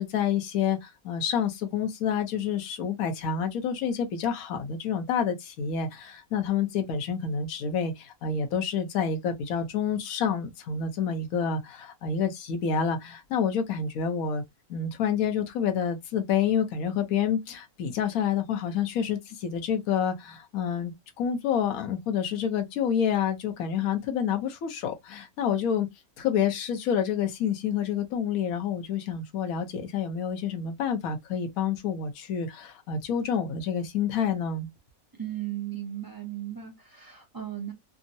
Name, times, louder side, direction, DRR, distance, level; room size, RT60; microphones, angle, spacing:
voice 1, 0.0-14.4 14.7-25.9 26.2-34.7, left 7 dB, 75° left, 1.2 m, -28 dB
voice 2, 35.2-37.7, right 11 dB, 20° right, 0.7 m, -36 dB
3.5 x 2.0 x 2.6 m
omnidirectional pair, 1.5 m